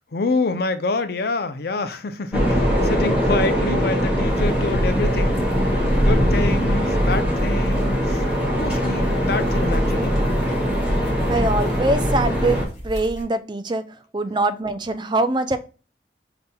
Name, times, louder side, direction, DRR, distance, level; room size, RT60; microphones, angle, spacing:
voice 1, 0.1-5.4 6.0-8.2 8.6-10.1, left 3 dB, 60° left, 0.6 m, -26 dB
sound 1, 2.3-12.6, equal, 5° right, 2.0 m, -21 dB
sound 2, 4.2-13.2, equal, 40° left, 2.2 m, -31 dB
voice 2, 11.3-13.8 14.1-15.6, right 2 dB, 25° right, 0.4 m, -23 dB
5.4 x 4.0 x 2.3 m
head